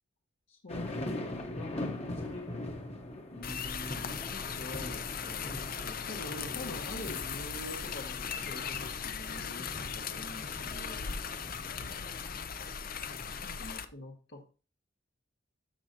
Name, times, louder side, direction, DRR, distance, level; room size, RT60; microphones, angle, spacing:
voice 1, 0.5-2.5 3.3-5.5 5.8-11.0 13.4-14.4, left 1 dB, 75° left, -1 dB, 1.8 m, -45 dB
sound 1, 0.7-13.4, left 1 dB, 35° left, 1.3 m, -42 dB
sound 2, 3.4-13.9, left 7 dB, 50° left, 0.7 m, -38 dB
13.5 x 5.5 x 2.9 m, 0.33 s
head